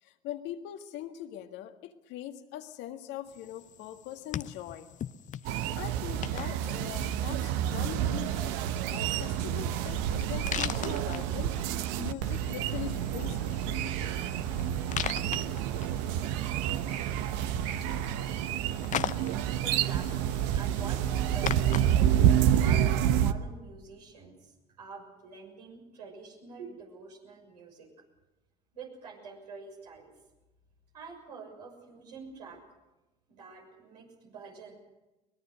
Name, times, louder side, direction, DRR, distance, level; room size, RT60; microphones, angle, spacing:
voice 1, 0.0-4.9 5.7-8.7 8.9-11.6 12.0-14.1, left 12 dB, 60° left, 6 dB, 1.8 m, -42 dB
sound 1, 3.3-22.9, left 10 dB, 40° left, 0.7 m, -41 dB
sound 2, 5.4-23.3, right 10 dB, 65° right, 1.0 m, -29 dB
voice 2, 19.6-22.2 22.6-27.9 28.7-30.1 30.9-32.6 33.3-34.7, right 5 dB, 85° right, -1 dB, 6.6 m, -46 dB
23.5 x 20.5 x 6.5 m, 1.0 s
hypercardioid pair, 70°, 20 cm